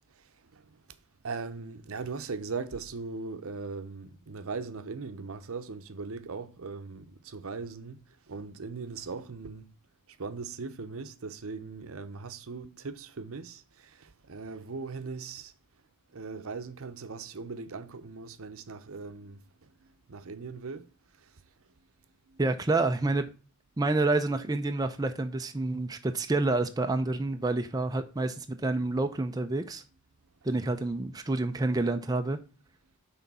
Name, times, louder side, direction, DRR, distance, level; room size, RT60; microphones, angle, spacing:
voice 1, 1.2-8.0 8.3-9.7 10.1-15.5 16.1-19.7 20.1-20.9 21.2-21.3 22.3-22.4 30.6-30.7, right 4 dB, 75° right, 0.7 m, -39 dB
voice 2, 22.4-23.3 23.8-29.8 30.4-32.4, right 2 dB, 15° right, 0.4 m, -28 dB
6.1 x 3.9 x 5.4 m
head